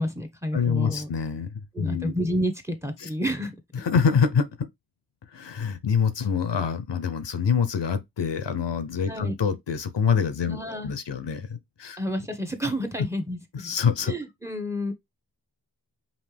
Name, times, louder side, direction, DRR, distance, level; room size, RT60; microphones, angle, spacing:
voice 1, 0.0-1.1 1.7-3.5 9.1-9.3 10.5-10.9 12.0-13.7 14.1-14.9, equal, 5° right, 1.0 m, -30 dB
voice 2, 0.5-2.1 3.0-3.1 3.7-4.7 5.3-12.0 13.5-14.1, left 6 dB, 80° left, 0.8 m, -26 dB
5.3 x 2.7 x 3.3 m
wide cardioid pair, 50°, 42 cm